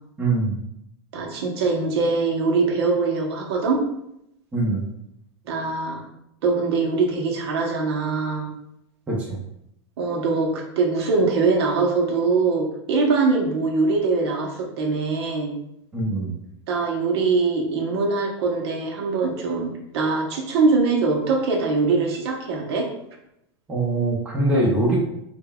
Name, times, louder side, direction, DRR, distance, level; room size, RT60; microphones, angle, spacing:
voice 1, 0.2-0.6 4.5-4.8 9.1-9.4 15.9-16.4 23.7-25.0, right 2 dB, 10° right, -4 dB, 0.6 m, -22 dB
voice 2, 1.1-3.8 5.5-6.0 6.4-8.5 10.0-15.5 16.7-22.9, right 4 dB, 60° right, 1 dB, 0.8 m, -22 dB
5.2 x 2.2 x 2.2 m, 0.79 s
supercardioid pair, 160°, 15 cm